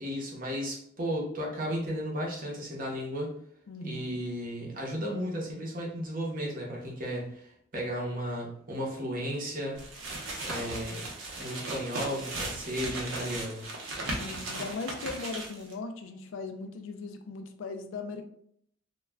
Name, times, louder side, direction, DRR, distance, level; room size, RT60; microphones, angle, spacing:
voice 1, 0.0-3.3 3.8-9.8 10.4-11.1 11.4-13.7, equal, 40° right, -2 dB, 0.7 m, -34 dB
voice 2, 3.7-4.2 13.9-18.2, left 3 dB, 70° left, 7 dB, 0.3 m, -39 dB
sound 1, 9.8-15.7, right 2 dB, 75° right, 0.7 m, -37 dB
2.3 x 2.1 x 3.4 m, 0.67 s
head